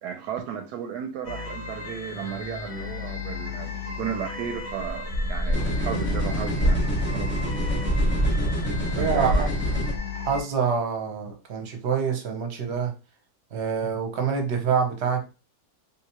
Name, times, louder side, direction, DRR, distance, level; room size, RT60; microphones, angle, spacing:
voice 1, 0.0-7.7 8.0-8.6 8.9-9.5, right 8 dB, 85° right, 1.2 m, -35 dB
sound 1, 1.2-10.4, left 4 dB, 45° left, 0.8 m, -35 dB
sound 2, 1.9-8.7 9.0-10.0, equal, 30° left, 0.5 m, -29 dB
sound 3, 5.5-9.9, equal, 10° left, 0.9 m, -28 dB
voice 2, 8.9-9.5 10.1-12.9 13.5-15.3, right 6 dB, 55° right, 0.9 m, -26 dB
3.5 x 2.8 x 2.9 m
omnidirectional pair, 1.7 m